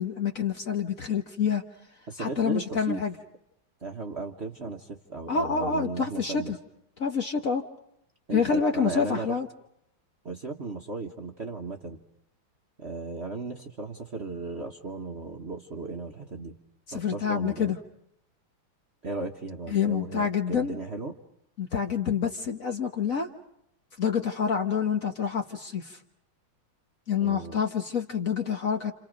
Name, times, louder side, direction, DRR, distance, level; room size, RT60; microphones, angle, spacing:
voice 1, 0.0-1.6 2.2-3.1 5.3-6.6 7.0-7.6 8.3-9.5 16.9-17.8 19.7-20.8 21.6-23.3 24.0-26.0 27.1-28.9, left 6 dB, 45° left, 4 dB, 1.4 m, -27 dB
voice 2, 2.1-3.0 3.8-6.5 8.3-9.4 10.2-12.0 12.8-16.6 16.9-17.8 19.0-21.2 27.2-27.6, right 3 dB, 40° right, 2 dB, 1.2 m, -36 dB
29.5 x 28.0 x 5.2 m, 0.78 s
omnidirectional pair, 2.3 m